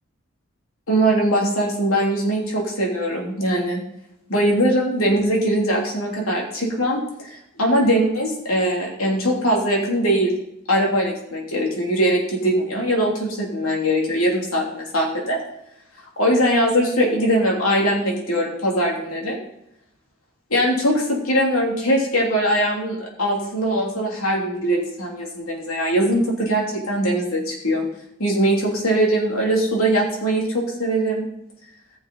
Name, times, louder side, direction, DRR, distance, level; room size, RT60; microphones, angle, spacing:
voice 1, 0.9-3.8 4.3-10.3 10.7-15.4 16.2-19.4 20.5-27.8 28.2-31.3, right 1 dB, 90° left, -1 dB, 3.1 m, -21 dB
14.5 x 7.1 x 4.1 m, 0.79 s
head